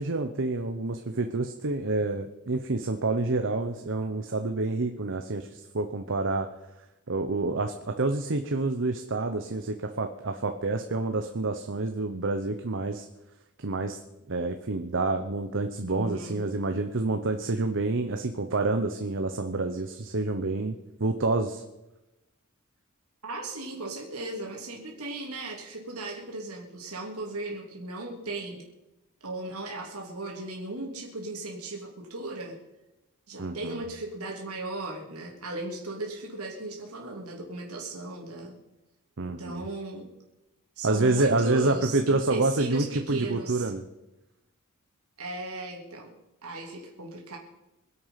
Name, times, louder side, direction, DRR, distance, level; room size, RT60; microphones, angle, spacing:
voice 1, 0.0-6.5 7.1-13.1 13.6-14.0 14.3-21.6 33.4-33.8 39.2-39.6 40.8-43.8, right 2 dB, 60° right, 6 dB, 1.0 m, -28 dB
voice 2, 15.9-16.4 23.2-28.6 29.2-32.6 33.3-38.6 39.2-40.1 40.8-43.7 45.2-46.1 46.4-47.4, right 2 dB, 85° right, -1 dB, 3.3 m, -37 dB
24.5 x 8.4 x 5.8 m, 0.98 s
head